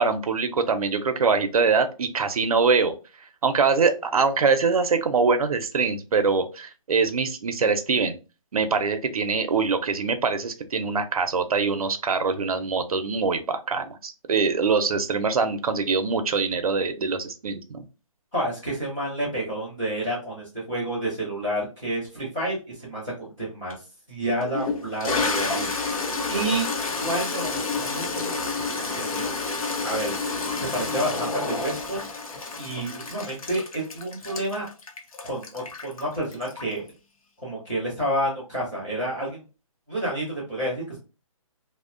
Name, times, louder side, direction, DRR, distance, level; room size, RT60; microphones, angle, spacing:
voice 1, 0.0-3.0 3.4-8.2 8.5-17.8, right 4 dB, 85° right, 9 dB, 0.6 m, -23 dB
voice 2, 18.3-23.7 24.1-25.9 26.3-26.7 27.0-29.4 29.8-30.1 30.7-32.0 32.6-34.7 35.2-36.8 37.4-39.4 39.9-41.0, right 1 dB, 5° left, -12 dB, 0.4 m, -29 dB
Toilet flush, 23.7-23.8 24.4-36.9, left 3 dB, 75° left, 0.7 m, -29 dB
2.7 x 2.1 x 2.4 m, 0.31 s
hypercardioid pair, 175°, 18 cm